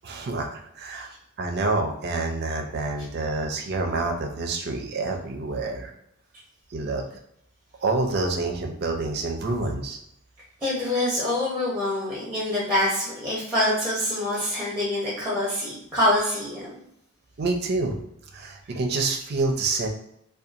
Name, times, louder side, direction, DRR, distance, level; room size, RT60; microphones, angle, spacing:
voice 1, 0.0-1.1 1.4-5.9 6.7-7.0 7.8-10.0 17.4-18.0 18.3-19.9, right 3 dB, 50° right, 2 dB, 0.4 m, -27 dB
voice 2, 10.6-16.7, left 1 dB, 5° right, -7 dB, 0.6 m, -25 dB
2.7 x 2.2 x 2.4 m, 0.75 s
head